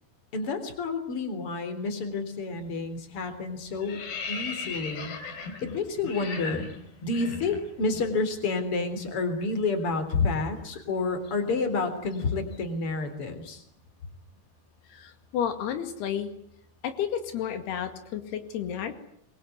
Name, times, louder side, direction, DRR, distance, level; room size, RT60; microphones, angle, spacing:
voice 1, 0.3-5.1 5.6-6.7 7.0-13.6, left 3 dB, 35° left, 9 dB, 4.3 m, -29 dB
sound 1, 2.6-2.9 3.2-8.1 8.4-8.6 8.9-12.9, left 4 dB, 65° left, 5.0 m, -40 dB
voice 2, 14.9-16.3 16.8-19.0, left 9 dB, 85° left, 8 dB, 4.2 m, -31 dB
25.5 x 22.5 x 9.6 m, 0.70 s
omnidirectional pair, 4.5 m